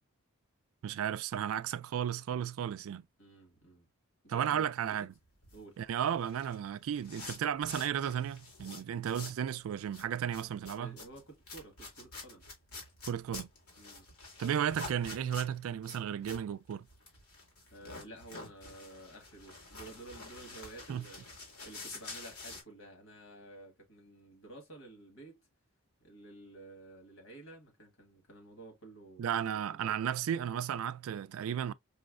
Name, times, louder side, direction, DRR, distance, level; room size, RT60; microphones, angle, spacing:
voice 1, 0.8-3.0 4.3-5.1 5.8-11.0 13.1-13.5 14.4-16.9 20.9-21.0 29.2-31.7, right 9 dB, 75° right, 0.3 m, -34 dB
voice 2, 3.2-3.9 4.2-5.1 5.5-5.8 10.8-12.5 13.8-14.1 17.7-25.4 26.0-29.9, right 2 dB, 65° left, 1.6 m, -52 dB
sound 1, 5.2-9.5 9.8-22.6, left 3 dB, 85° left, 2.0 m, -48 dB
5.3 x 2.1 x 2.4 m
head